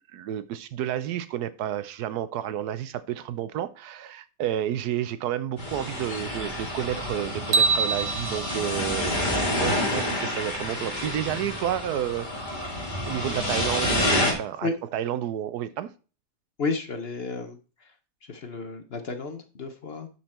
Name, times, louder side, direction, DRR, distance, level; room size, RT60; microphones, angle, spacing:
voice 1, 0.1-12.6 13.0-15.9, right 11 dB, 80° right, 1.2 m, -31 dB
sound 1, 5.6-14.3, left 1 dB, 30° left, 2.3 m, -28 dB
sound 2, 7.5-9.8, right 4 dB, 60° right, 1.4 m, -26 dB
voice 2, 16.6-17.9 18.2-20.1, left 3 dB, 45° left, 0.9 m, -32 dB
12.0 x 4.5 x 4.3 m
omnidirectional pair, 1.7 m